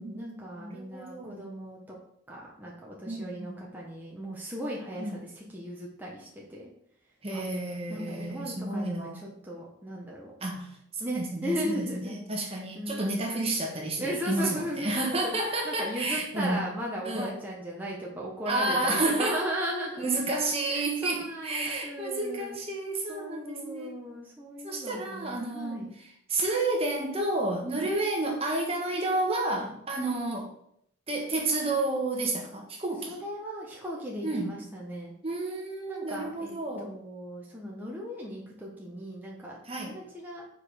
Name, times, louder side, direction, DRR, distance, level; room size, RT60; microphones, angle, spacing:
voice 1, 0.0-1.9 2.3-6.7 7.3-7.4 7.9-10.3 11.0-12.1 12.4-13.2 14.0-15.3 15.6-20.1 20.7-22.6 23.1-25.9 27.6-27.9 29.6-29.8 33.0-35.1 35.9-40.4, equal, 10° right, -4 dB, 1.1 m, -37 dB
voice 2, 0.6-1.4 3.0-3.6 5.0-5.2 7.2-9.2 10.4-16.6 17.0-17.4 18.5-19.5 20.0-23.9 24.6-30.5 31.1-33.2 34.2-34.6 35.2-36.9 39.6-39.9, right 2 dB, 30° right, 0 dB, 1.3 m, -31 dB
6.7 x 5.0 x 5.1 m, 0.71 s
head